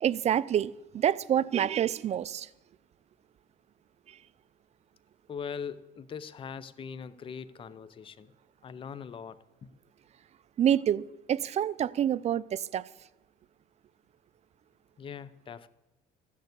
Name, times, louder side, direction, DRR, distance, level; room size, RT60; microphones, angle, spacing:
voice 1, 0.0-2.5 10.6-11.0 11.3-12.8, right 10 dB, 40° right, 0.4 m, -27 dB
voice 2, 5.3-8.3 8.6-9.7 15.0-15.7, left 6 dB, 30° left, 0.5 m, -41 dB
14.5 x 6.6 x 8.2 m
cardioid pair, 110°, 17 cm